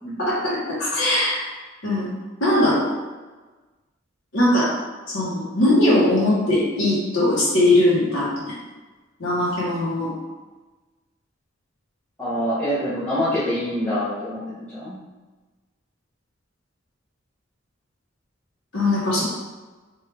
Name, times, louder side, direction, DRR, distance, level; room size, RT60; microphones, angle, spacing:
voice 1, 0.2-1.4 1.8-2.1 2.4-2.8 4.3-4.7 5.1-8.5 9.2-10.1 18.7-19.2, left 1 dB, 70° left, -9 dB, 1.3 m, -20 dB
voice 2, 12.2-15.0, equal, 5° left, -14 dB, 1.0 m, -25 dB
4.7 x 2.7 x 3.3 m, 1.2 s
head